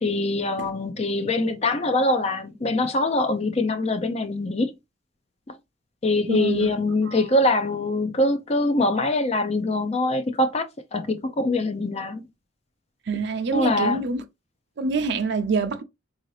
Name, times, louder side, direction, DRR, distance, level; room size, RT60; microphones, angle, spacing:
voice 1, 0.0-4.7 6.0-10.7 10.9-12.2 13.5-14.0, left 2 dB, 30° left, 0.5 m, -23 dB
voice 2, 6.3-6.7 7.1-7.2 13.1-14.2 14.8-15.8, right 4 dB, 55° right, 0.5 m, -26 dB
3.7 x 2.7 x 3.1 m
head